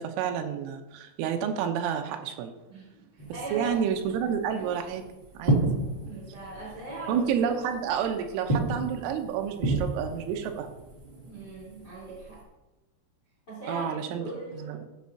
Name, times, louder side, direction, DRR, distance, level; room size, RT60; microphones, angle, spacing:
voice 1, 0.0-2.5 3.5-5.0 5.3-5.6 7.1-10.7 13.7-14.9, right 8 dB, 80° right, 5 dB, 3.3 m, -30 dB
voice 2, 2.7-3.8 4.6-4.7 6.0-7.6 11.2-12.4 13.5-14.8, right 2 dB, 20° left, -7 dB, 3.5 m, -40 dB
sound 1, 3.2-12.4, right 2 dB, 65° right, 0.6 m, -33 dB
14.5 x 8.0 x 2.8 m, 1.0 s
omnidirectional pair, 5.9 m